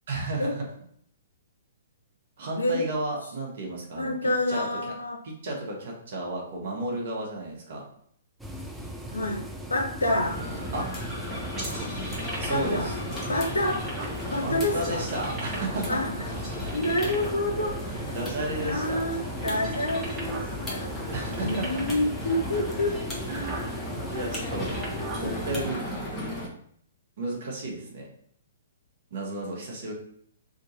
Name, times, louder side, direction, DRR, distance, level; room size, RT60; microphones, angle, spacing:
voice 1, 0.1-0.6 2.4-4.9 5.2-7.8 10.7-10.9 12.4-12.9 14.4-16.0 16.6-16.7 18.1-19.0 21.1-21.8 23.3-23.8 24.1-24.7 25.2-25.8 27.2-28.1 29.1-29.9, right 2 dB, 55° right, -2 dB, 1.0 m, -33 dB
voice 2, 4.0-5.2 9.1-9.4 9.7-10.4 12.5-12.9 13.3-13.8 14.3-15.0 15.9-16.1 16.7-18.0 18.6-20.9 21.4-22.9, left 1 dB, 85° left, 1 dB, 0.5 m, -28 dB
sound 1, 8.4-25.7, equal, 5° right, 0.4 m, -38 dB
sound 2, 10.2-26.5, equal, 15° left, 1.0 m, -35 dB
sound 3, 11.5-12.7 13.1-14.2 14.7-16.0 16.3-17.4 17.9-19.2 19.5-20.5 20.8-20.9 21.2-22.0 22.7-22.8 23.2-23.7 24.3-25.2, right 2 dB, 20° right, 1.2 m, -39 dB
2.9 x 2.5 x 4.0 m, 0.65 s
hypercardioid pair, 125°, 0 cm